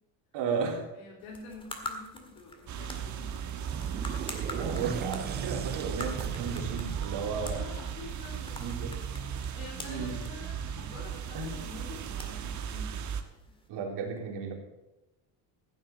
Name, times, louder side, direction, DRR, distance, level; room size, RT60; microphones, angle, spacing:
voice 1, 0.3-0.8 4.5-7.7 8.6-8.9 9.8-10.2 11.3-11.5 13.7-14.5, right 5 dB, 65° right, 1 dB, 3.4 m, -34 dB
voice 2, 0.9-3.5 7.4-8.9 9.3-13.0, left 3 dB, 85° left, -2 dB, 3.1 m, -47 dB
sound 1, 1.2-13.7, left 2 dB, 10° left, 1.8 m, -46 dB
sound 2, 2.7-13.2, right 8 dB, 40° right, 1.3 m, -36 dB
sound 3, 3.3-8.7, right 8 dB, 25° right, 0.4 m, -39 dB
15.0 x 7.6 x 7.0 m, 0.95 s
cardioid pair, 145°, 45 cm